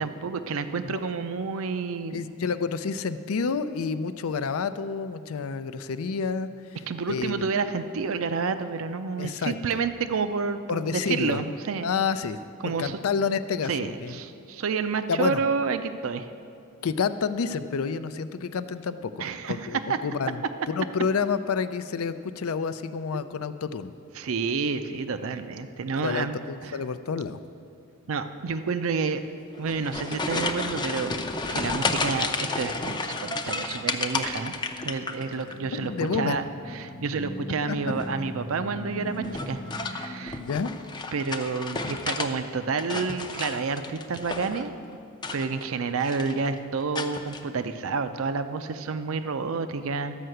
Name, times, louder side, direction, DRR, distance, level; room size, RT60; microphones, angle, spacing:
voice 1, 0.0-2.2 6.9-11.9 12.6-13.0 13.7-16.3 19.2-20.0 24.2-26.8 28.1-29.2 29.6-31.1 31.5-34.5 34.8-36.4 36.7-40.4 41.1-44.7 45.3-50.1, right 5 dB, 70° right, 10 dB, 0.5 m, -29 dB
voice 2, 0.8-1.2 2.1-6.5 7.1-7.5 9.2-9.8 10.7-11.4 11.8-12.4 12.8-14.2 15.1-15.4 16.8-23.9 26.0-27.4 35.7-36.4 37.7-37.8 40.4-40.8, left 5 dB, 80° left, 12 dB, 0.5 m, -29 dB
sound 1, 29.5-35.6 35.9-36.4 37.8-38.2 39.2-42.3 42.6-44.7 45.1-45.7 46.0-46.5 46.9-47.4, left 3 dB, 20° left, 0.5 m, -32 dB
sound 2, 35.2-40.3, equal, 60° left, 0.9 m, -40 dB
12.5 x 5.7 x 7.7 m, 2.4 s
head